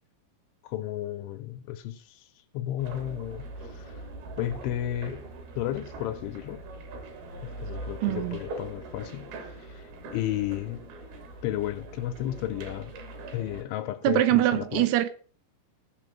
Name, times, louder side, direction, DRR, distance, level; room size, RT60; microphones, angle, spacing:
voice 1, 0.6-2.3 2.5-4.0 4.4-5.2 5.6-6.6 7.4-10.8 11.4-12.9 13.3-14.9, left 12 dB, 80° left, 3.0 m, -33 dB
sound 1, 2.8-13.6, right 2 dB, 55° right, 4.4 m, -42 dB
voice 2, 8.0-8.4 14.1-15.1, right 14 dB, 90° right, 3.8 m, -23 dB
15.5 x 6.0 x 7.6 m
omnidirectional pair, 6.0 m